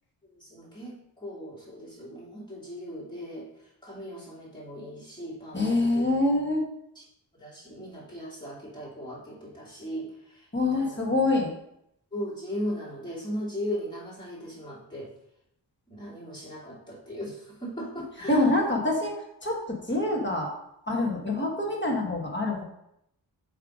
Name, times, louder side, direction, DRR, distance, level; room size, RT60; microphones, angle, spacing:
voice 1, 0.3-3.5 3.8-6.1 6.9-7.0 7.4-11.0 12.1-15.1 15.9-18.7, equal, 10° left, -8 dB, 2.6 m, -38 dB
voice 2, 5.5-6.7 10.5-11.5 18.3-19.1 19.4-20.5 20.9-22.6, left 2 dB, 25° left, -1 dB, 1.7 m, -25 dB
7.5 x 3.5 x 5.0 m, 0.78 s
wide cardioid pair, 90°, 43 cm